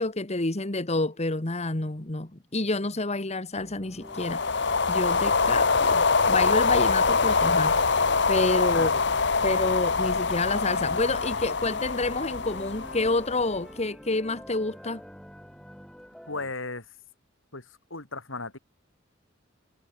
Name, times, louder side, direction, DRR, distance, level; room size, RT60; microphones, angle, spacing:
voice 1, 0.0-8.9 9.4-15.0, left 2 dB, 35° left, 1.6 m, -29 dB
sound 1, 3.5-16.5, equal, 5° left, 6.7 m, -48 dB
sound 2, 4.1-13.6, left 4 dB, 65° left, 1.6 m, -24 dB
voice 2, 16.3-16.9 17.5-18.6, left 3 dB, 90° left, 6.9 m, -35 dB
head